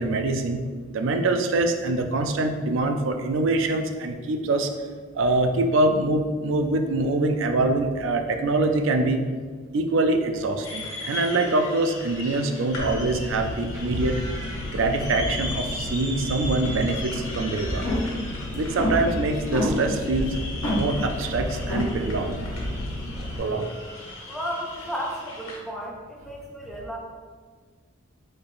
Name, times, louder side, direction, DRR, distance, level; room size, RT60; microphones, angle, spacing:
voice 1, 0.0-4.7 5.1-9.2 9.7-14.2 14.7-17.9 18.5-20.3 20.7-22.5 23.4-23.7, right 2 dB, 70° right, 6 dB, 0.4 m, -24 dB
sound 1, 10.6-25.6, left 2 dB, 90° left, 1.4 m, -38 dB
Engine, 12.8-23.4, left 1 dB, 35° right, 1.2 m, -33 dB
sound 2, 17.8-18.2 18.5-19.0 19.5-19.7 20.1-20.3 20.6-20.8 21.3-21.4 21.7-21.8, left 1 dB, 70° left, 0.9 m, -25 dB
voice 2, 24.3-27.0, equal, ahead, -3 dB, 0.5 m, -33 dB
4.3 x 2.5 x 3.3 m, 1.6 s
head